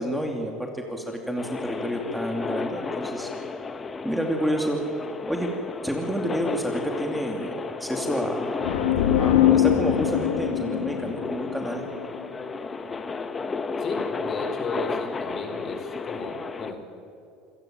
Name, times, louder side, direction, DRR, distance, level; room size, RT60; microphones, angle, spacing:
voice 1, 0.0-3.3 4.0-4.8 5.3-5.5 5.8-8.5 9.2-11.8, equal, ahead, 2 dB, 2.6 m, -29 dB
sound 1, 1.4-16.7, left 4 dB, 25° left, 1.3 m, -33 dB
sound 2, 8.6-12.3, left 11 dB, 85° left, 2.3 m, -23 dB
voice 2, 13.8-16.8, left 3 dB, 40° left, 5 dB, 4.4 m, -34 dB
27.0 x 15.0 x 9.0 m, 2.6 s
supercardioid pair, 110°, 0 cm